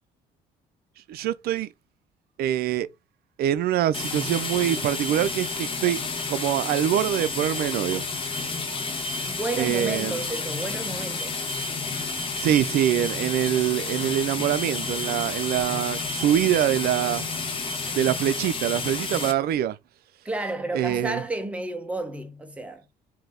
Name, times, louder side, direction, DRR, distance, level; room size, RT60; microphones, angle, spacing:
voice 1, 1.1-1.7 2.4-2.9 3.4-6.0 6.3-8.0 9.5-10.2 12.4-17.3 17.9-19.8 20.7-21.2, right 11 dB, 65° right, 0.5 m, -24 dB
sound 1, 3.9-19.3, left 3 dB, 30° left, 1.1 m, -30 dB
voice 2, 9.3-11.4 20.2-22.8, right 2 dB, 5° right, 0.8 m, -32 dB
3.8 x 2.8 x 3.4 m
cardioid pair, 110°, 17 cm